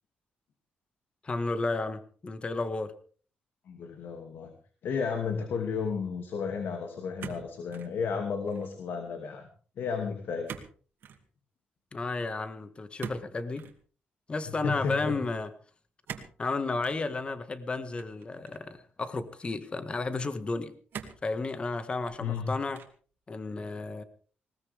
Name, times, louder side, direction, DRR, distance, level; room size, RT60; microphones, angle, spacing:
voice 1, 1.2-2.9 11.9-13.6 14.3-15.5 16.4-20.7 21.2-22.8 23.3-24.0, left 3 dB, 30° left, 11 dB, 1.7 m, -32 dB
voice 2, 3.7-4.5 4.8-9.5 9.8-10.5 14.6-15.2 22.2-22.5, left 5 dB, 70° left, 5 dB, 2.5 m, -33 dB
sound 1, 7.2-7.9 8.3-8.7 10.5-10.7 11.0-11.2 13.0-13.8 16.0-16.4 16.8-17.0 17.9-18.7 19.4-19.5 20.9-21.3 21.9-22.4 22.7-23.1, right 8 dB, 70° right, 2.4 m, -43 dB
20.0 x 19.0 x 3.6 m, 0.41 s
cardioid pair, 115°, 4 cm